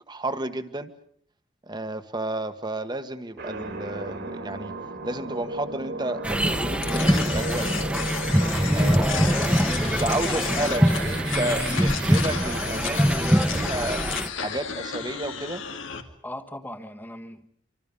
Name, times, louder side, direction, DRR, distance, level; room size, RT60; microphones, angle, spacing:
voice 1, 0.1-0.9 1.7-4.7 5.0-7.8 8.7-9.5 10.0-14.0 14.4-15.6, right 2 dB, 20° right, 9 dB, 1.5 m, -31 dB
sound 1, 3.4-14.2, right 3 dB, 60° right, 3.3 m, -36 dB
sound 2, 6.2-14.3, equal, 5° right, 1.2 m, -23 dB
sound 3, 6.8-16.0, left 7 dB, 85° left, 2.4 m, -33 dB
voice 2, 8.5-10.9 16.2-17.5, left 1 dB, 10° left, 7 dB, 1.4 m, -39 dB
26.5 x 25.5 x 5.5 m, 0.64 s
head